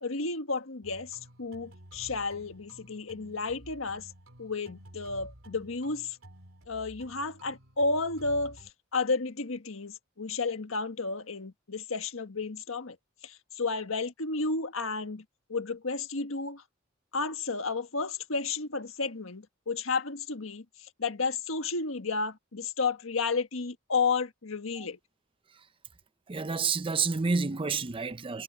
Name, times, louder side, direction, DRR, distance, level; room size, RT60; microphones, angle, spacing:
voice 1, 0.0-4.1 4.4-6.2 6.7-8.6 8.9-13.0 13.2-15.2 15.5-16.6 17.1-25.0, left 4 dB, 80° left, 1.5 m, -32 dB
sound 1, 0.8-8.7, right 1 dB, 75° right, 3.3 m, -52 dB
voice 2, 26.3-28.4, right 4 dB, 25° right, 0.5 m, -29 dB
head